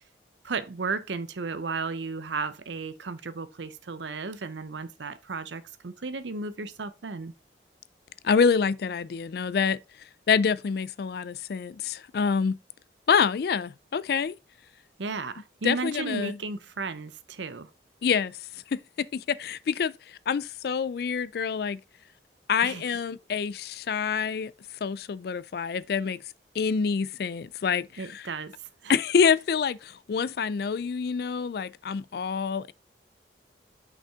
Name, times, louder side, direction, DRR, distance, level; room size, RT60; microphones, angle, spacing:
voice 1, 0.4-7.3 15.0-17.7 22.6-23.0 28.0-28.5 28.8-28.9, right 4 dB, 75° right, 0.7 m, -34 dB
voice 2, 8.2-9.8 10.3-12.6 13.1-14.3 15.6-16.4 18.0-18.4 18.7-21.8 22.5-24.5 24.8-26.2 26.6-28.3 28.9-32.7, left 6 dB, 55° left, 0.3 m, -26 dB
6.0 x 5.5 x 3.6 m
head